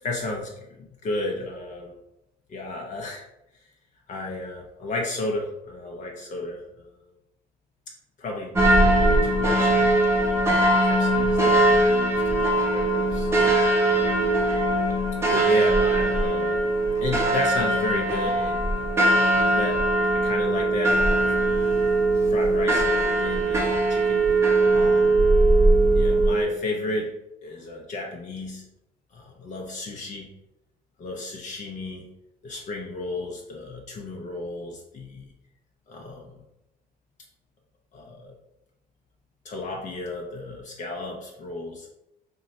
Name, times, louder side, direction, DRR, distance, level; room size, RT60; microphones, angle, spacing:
voice 1, 0.0-2.0 2.5-3.3 3.5-3.7 4.1-7.0 7.9-10.2 10.8-13.3 13.9-14.4 15.3-16.6 17.0-18.6 19.2-19.8 20.1-21.3 22.3-25.2 25.9-27.1 27.4-28.6 29.1-30.3 31.0-32.1 32.4-35.3 35.9-36.3 37.9-38.3 39.4-41.9, left 2 dB, 45° left, 0 dB, 0.5 m, -33 dB
sound 1, 8.6-26.4, right 2 dB, 15° right, 0.6 m, -21 dB
2.7 x 2.2 x 4.0 m, 0.87 s
cardioid pair, 110°, 17 cm